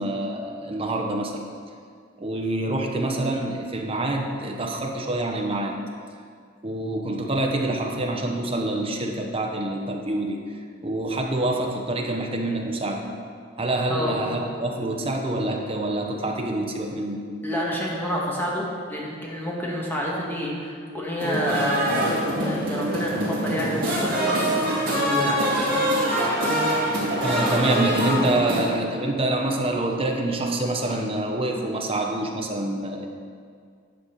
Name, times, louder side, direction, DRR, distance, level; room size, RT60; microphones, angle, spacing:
voice 1, 0.0-1.4 2.2-5.8 6.6-10.4 10.8-13.0 13.6-17.2 27.2-33.1, right 1 dB, 30° right, 2 dB, 0.9 m, -26 dB
voice 2, 13.9-14.2 17.4-25.4, equal, 10° left, -4 dB, 1.5 m, -28 dB
sound 1, 21.2-28.7, right 1 dB, 50° right, 2.4 m, -24 dB
10.5 x 4.1 x 6.4 m, 2.1 s
head